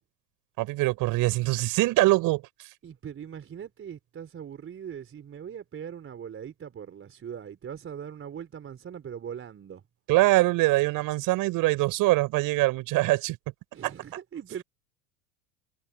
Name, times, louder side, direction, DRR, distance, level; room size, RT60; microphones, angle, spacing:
voice 1, 0.6-2.4 10.1-13.4 13.8-13.9, right 20 dB, 55° right, 5.7 m, -23 dB
voice 2, 2.8-9.8 13.7-14.6, right 8 dB, 30° right, 4.6 m, -40 dB
hypercardioid pair, 80°, 41 cm